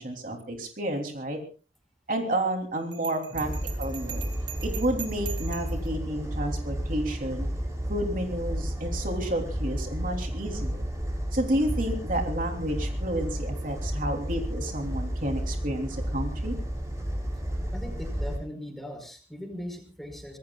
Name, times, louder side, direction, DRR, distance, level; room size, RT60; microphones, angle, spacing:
voice 1, 0.0-1.4 2.1-3.5 3.8-4.2 4.6-7.5 7.9-10.9 11.3-16.5, right 1 dB, 50° right, 3 dB, 3.2 m, -30 dB
Bell, 2.9-5.9, right 11 dB, 75° right, 2.5 m, -41 dB
sound 1, 3.3-18.4, equal, 20° right, 6.4 m, -32 dB
voice 2, 17.7-20.4, equal, ahead, 5 dB, 4.9 m, -39 dB
25.5 x 20.5 x 2.4 m, 0.37 s
head